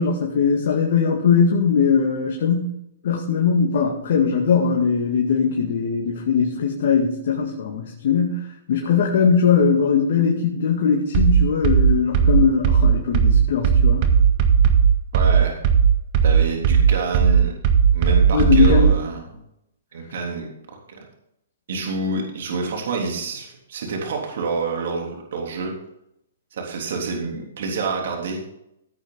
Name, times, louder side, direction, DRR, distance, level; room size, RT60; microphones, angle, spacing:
voice 1, 0.0-2.7 3.0-14.1 18.3-18.9, left 6 dB, 60° left, 1 dB, 2.2 m, -20 dB
sound 1, 11.1-19.0, right 7 dB, 40° right, 1.8 m, -16 dB
voice 2, 15.1-15.6 16.2-17.5 17.9-19.4 19.9-20.5 21.7-25.7 26.5-28.4, right 4 dB, 65° right, 1 dB, 3.5 m, -27 dB
16.0 x 8.7 x 4.1 m, 0.79 s
hypercardioid pair, 135°, 0 cm